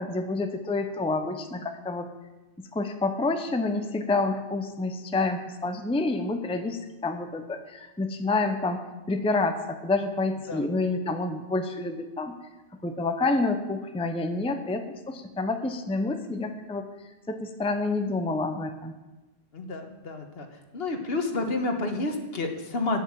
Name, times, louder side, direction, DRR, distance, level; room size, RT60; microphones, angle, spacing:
voice 1, 0.0-2.1 2.6-8.8 9.1-12.4 12.8-16.9 17.3-18.9, left 3 dB, 5° left, 7 dB, 0.6 m, -28 dB
voice 2, 19.5-20.5 20.7-23.0, left 2 dB, 65° left, 4 dB, 1.4 m, -30 dB
9.2 x 7.9 x 7.4 m, 1.1 s
omnidirectional pair, 1.1 m